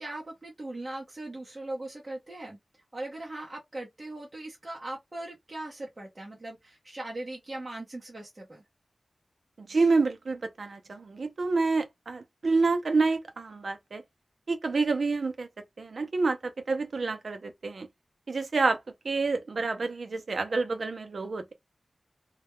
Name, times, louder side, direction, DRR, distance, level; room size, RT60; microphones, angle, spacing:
voice 1, 0.0-2.6 2.9-8.6, right 2 dB, 30° right, 0.7 m, -39 dB
voice 2, 9.6-14.0 14.5-15.5 15.8-17.9 18.3-18.8 19.0-21.5, right 3 dB, 70° right, 0.5 m, -28 dB
2.2 x 2.1 x 2.9 m
wide cardioid pair, 100°, 0 cm